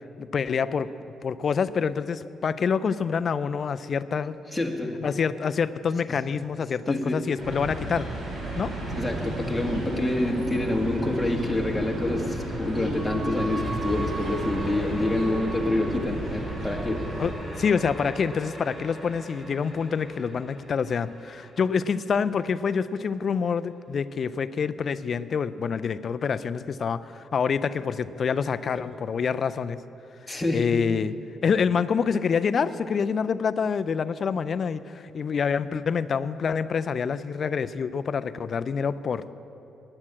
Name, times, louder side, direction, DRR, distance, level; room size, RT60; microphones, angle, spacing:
voice 1, 0.2-0.9 1.2-4.4 5.0-8.1 8.6-8.7 17.2-29.8 30.5-31.1 31.4-39.3, left 6 dB, 50° left, 13 dB, 0.4 m, -27 dB
voice 2, 4.5-4.9 6.9-7.2 8.9-17.0 30.3-30.6, left 1 dB, 10° left, 1 dB, 1.7 m, -27 dB
sound 1, 7.4-17.3, right 1 dB, 55° right, 3.2 m, -34 dB
sound 2, 9.6-21.8, right 1 dB, 20° right, 2.6 m, -37 dB
9.7 x 9.7 x 8.7 m, 2.9 s
cardioid pair, 90°, 0 cm